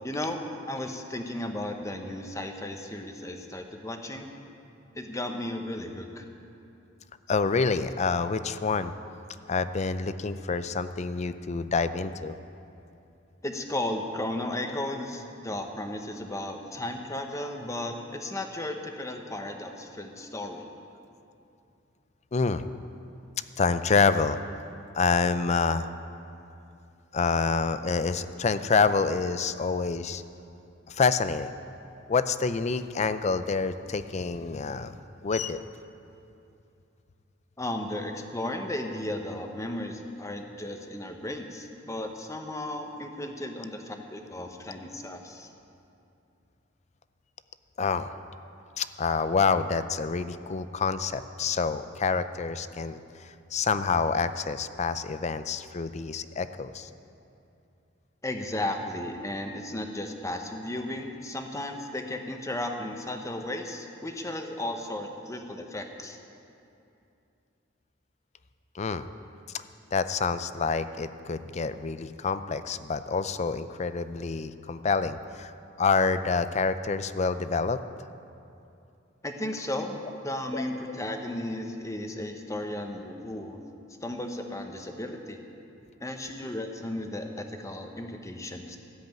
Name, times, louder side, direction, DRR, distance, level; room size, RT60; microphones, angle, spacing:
voice 1, 0.0-4.3 5.0-6.3 13.4-20.6 37.6-45.5 58.2-66.2 79.2-80.0 80.2-83.6 84.0-85.4 86.0-88.8, left 1 dB, 15° left, 4 dB, 1.0 m, -35 dB
voice 2, 7.3-8.9 9.5-12.4 22.3-22.6 23.6-24.4 24.9-25.9 27.1-30.2 30.9-31.5 32.1-34.9 35.2-35.6 47.8-48.1 48.8-56.9 68.7-69.1 69.5-69.6 69.9-75.5 75.8-77.8 80.5-81.0, left 4 dB, 35° left, 12 dB, 0.5 m, -27 dB
13.5 x 7.8 x 9.2 m, 2.7 s
head